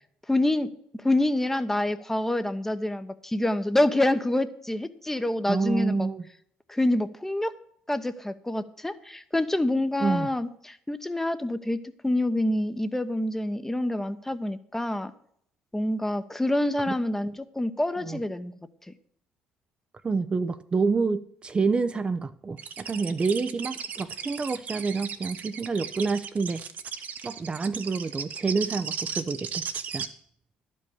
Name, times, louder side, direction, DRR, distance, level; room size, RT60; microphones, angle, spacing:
voice 1, 0.3-6.1 6.7-7.5 7.9-15.1 15.7-18.5 18.8-18.9, left 1 dB, 10° left, 11 dB, 1.0 m, -27 dB
voice 2, 5.5-6.2 10.0-10.3 18.0-18.2 20.0-26.6 27.2-30.1, right 4 dB, 30° right, 10 dB, 0.6 m, -28 dB
sound 1, 22.6-30.1, right 7 dB, 55° right, 1.2 m, -36 dB
11.5 x 5.4 x 8.4 m, 0.67 s
supercardioid pair, 70°, 3 cm